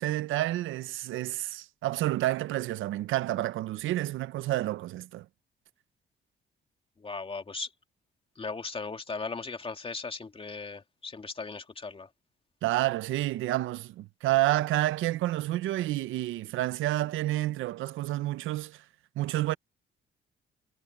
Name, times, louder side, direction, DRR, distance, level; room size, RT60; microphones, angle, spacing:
voice 1, 0.0-5.2 12.6-18.8 19.2-19.6, right 16 dB, 85° right, 0.6 m, -29 dB
voice 2, 7.0-7.7 8.4-12.1, left 4 dB, 30° left, 2.6 m, -37 dB
cardioid pair, 90°, 20 cm